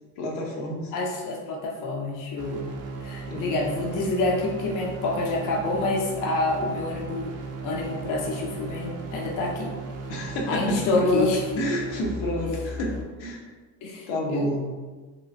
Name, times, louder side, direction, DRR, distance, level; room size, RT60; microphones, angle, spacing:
voice 1, 0.2-0.9 3.3-3.5 10.1-11.3 11.6-12.9 13.2-13.5 14.1-14.6, left 1 dB, 70° left, -1 dB, 0.9 m, -28 dB
voice 2, 0.9-2.6 3.0-7.3 7.6-9.7 10.5-11.4 13.8-14.5, left 2 dB, 40° left, -1 dB, 0.5 m, -27 dB
sound 1, 2.4-13.0, right 3 dB, 35° right, 0.4 m, -36 dB
3.0 x 2.3 x 2.5 m, 1.3 s
supercardioid pair, 90°, 50 cm